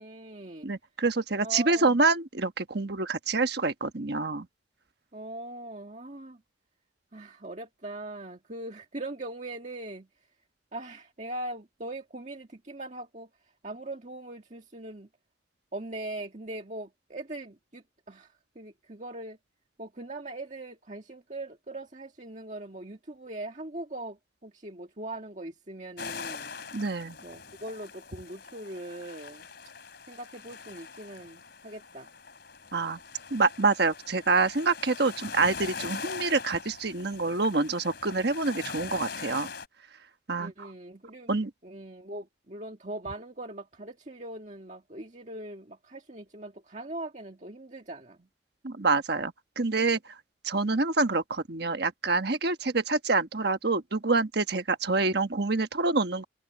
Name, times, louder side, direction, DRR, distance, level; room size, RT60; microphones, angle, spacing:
voice 1, 0.0-0.7 1.4-2.0 5.1-6.4 7.1-10.1 10.7-13.3 13.6-15.1 15.7-19.4 19.8-26.5 27.2-29.5 30.1-32.1 40.4-41.3 41.6-48.3, right 1 dB, 35° right, 1.8 m, -41 dB
voice 2, 0.6-4.5 26.7-27.2 32.7-33.0 33.3-39.5 40.3-40.7 41.3-41.5 48.6-50.0 50.4-56.2, right 3 dB, 55° right, 1.3 m, -27 dB
sound 1, 26.0-39.7, left 5 dB, 55° left, 4.5 m, -42 dB
open air
head